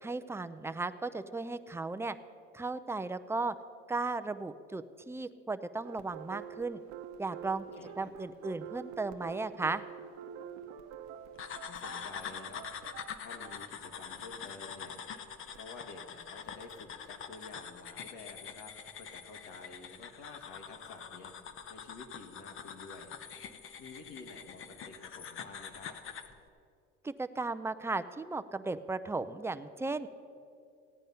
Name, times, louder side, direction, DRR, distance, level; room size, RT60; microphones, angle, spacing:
voice 1, 0.0-2.2 2.5-3.5 3.9-6.8 7.2-7.6 8.0-9.8 27.0-30.1, right 3 dB, 10° right, 11 dB, 0.4 m, -35 dB
sound 1, 5.8-15.7, right 8 dB, 70° right, 0.8 m, -48 dB
voice 2, 7.8-8.1 11.6-12.7 13.2-14.9 15.5-21.3 21.7-23.1 23.8-26.0, left 3 dB, 75° left, 3 dB, 1.9 m, -50 dB
sound 2, 11.4-26.3, left 7 dB, 45° left, 0.9 m, -45 dB
16.0 x 9.1 x 5.5 m, 2.5 s
supercardioid pair, 105°, 30 cm